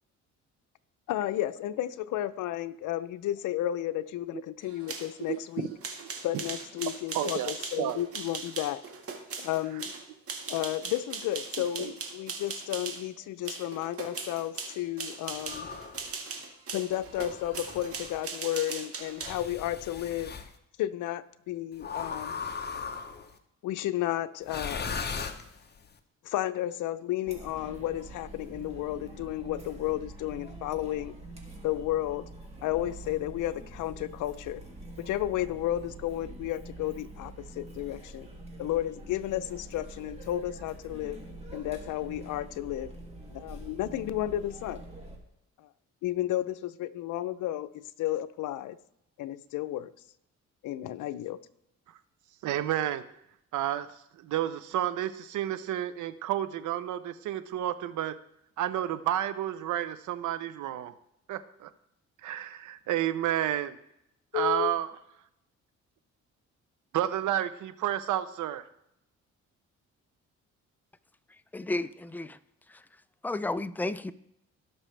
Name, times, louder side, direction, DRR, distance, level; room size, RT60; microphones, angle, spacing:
voice 1, 1.1-5.7 6.2-8.8 9.4-9.9 10.5-15.7 16.7-20.3 20.8-22.5 23.6-24.9 26.2-31.2 31.6-32.2 32.6-34.6 35.0-38.3 38.6-41.2 41.5-42.9 43.3-44.8 46.0-48.8 49.2-49.9 50.6-51.4 64.3-64.7, left 13 dB, 85° left, 0.6 m, -32 dB
sound 1, 4.6-13.1 13.4-19.4, right 4 dB, 50° right, 1.7 m, -40 dB
voice 2, 5.3-5.7 7.1-8.0 11.8-11.9 52.4-53.0 53.5-53.9 54.2-58.1 58.6-60.9 61.3-61.7 62.2-63.8 64.3-64.9 66.9-68.6, right 12 dB, 80° right, 0.8 m, -31 dB
sound 2, 15.4-16.1 17.0-18.2 19.2-20.5 21.8-23.3 24.4-25.9, left 5 dB, 35° left, 1.0 m, -38 dB
Chatter, 27.3-45.2, right 1 dB, 20° right, 2.4 m, -45 dB
voice 3, 71.5-72.4 73.2-74.1, left 2 dB, 5° left, 0.4 m, -32 dB
17.5 x 6.1 x 3.3 m
cardioid pair, 90°, 30 cm